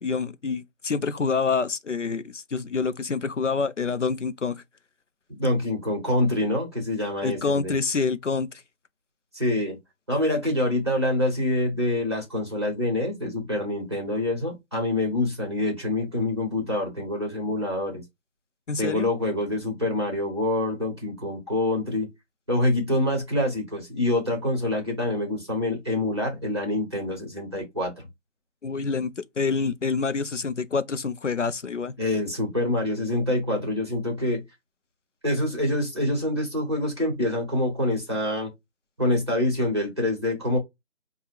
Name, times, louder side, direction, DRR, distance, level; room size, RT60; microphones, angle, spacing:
voice 1, 0.0-4.6 7.2-8.6 18.7-19.1 28.6-31.9, left 5 dB, 75° left, 0.6 m, -27 dB
voice 2, 5.4-7.7 9.3-9.8 10.1-18.0 18.8-22.1 22.5-27.9 32.0-34.4 35.2-38.5 39.0-40.6, left 1 dB, 20° right, 1.2 m, -26 dB
5.5 x 2.3 x 3.4 m
figure-of-eight pair, 170°, 37 cm